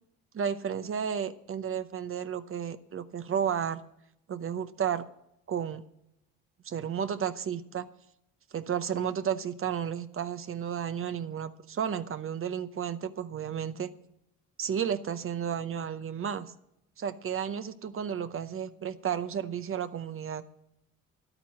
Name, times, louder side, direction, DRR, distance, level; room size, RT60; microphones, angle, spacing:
voice 1, 0.3-3.8 4.3-5.0 5.5-5.8 6.6-7.9 8.5-13.9 14.6-16.5 17.0-20.4, right 8 dB, 45° right, 12 dB, 0.7 m, -32 dB
11.0 x 9.0 x 7.3 m, 0.79 s
cardioid pair, 90°, 30 cm